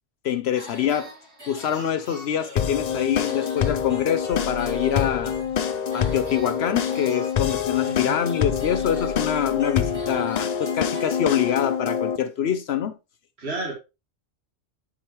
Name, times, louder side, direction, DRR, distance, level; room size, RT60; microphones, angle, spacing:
voice 1, 0.2-1.1 1.5-5.3 5.9-12.9, left 9 dB, 75° left, 0.9 m, -25 dB
sound 1, 0.5-11.7, equal, 90° right, 5.1 m, -44 dB
sound 2, 2.6-12.2, left 8 dB, 50° left, 0.5 m, -26 dB
sound 3, 4.3-5.6 7.5-7.6 8.5-9.9 11.7-11.8 12.3-12.4, left 3 dB, 90° left, 2.9 m, -40 dB
voice 2, 7.8-8.2 13.4-13.7, right 2 dB, 70° right, 2.0 m, -31 dB
9.7 x 5.1 x 3.0 m
omnidirectional pair, 1.1 m